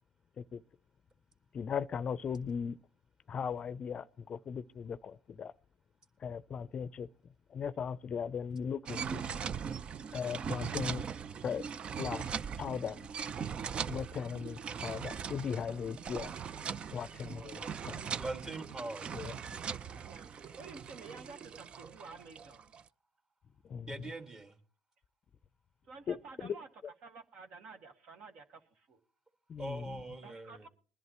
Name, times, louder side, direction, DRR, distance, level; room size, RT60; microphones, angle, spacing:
voice 1, 1.5-2.8 3.3-5.5 6.2-7.1 7.5-9.2 10.1-11.0 11.4-11.6 12.0-12.2 12.6-13.1 13.9-16.3 16.9-18.0 19.1-19.3 23.6-23.9 26.1-26.6 29.5-30.0, left 7 dB, 45° left, 0.5 m, -38 dB
sound 1, 8.9-22.8, right 7 dB, 40° right, 0.5 m, -40 dB
voice 2, 17.3-18.3 20.0-22.7 24.1-24.2 25.9-26.7 27.0-29.0 30.2-30.7, right 4 dB, 60° right, 1.8 m, -52 dB
voice 3, 18.2-19.2 23.9-24.6 29.6-30.7, right 2 dB, 25° right, 1.9 m, -42 dB
21.5 x 11.0 x 3.0 m
supercardioid pair, 80°, 3 cm